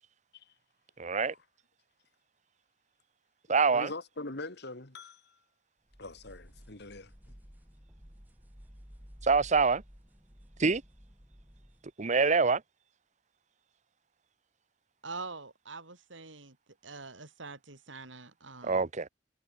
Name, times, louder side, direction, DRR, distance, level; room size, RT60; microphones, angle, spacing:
voice 1, 1.0-1.3 3.5-3.9 9.2-9.8 10.6-10.8 12.0-12.6 18.6-19.1, right 4 dB, 40° right, 0.9 m, -25 dB
voice 2, 3.7-5.4 6.0-7.1, left 2 dB, 65° left, 3.0 m, -42 dB
sound 1, 5.9-11.9, equal, 10° right, 3.5 m, -53 dB
voice 3, 15.0-16.6 16.8-18.8, right 3 dB, 80° right, 4.7 m, -44 dB
head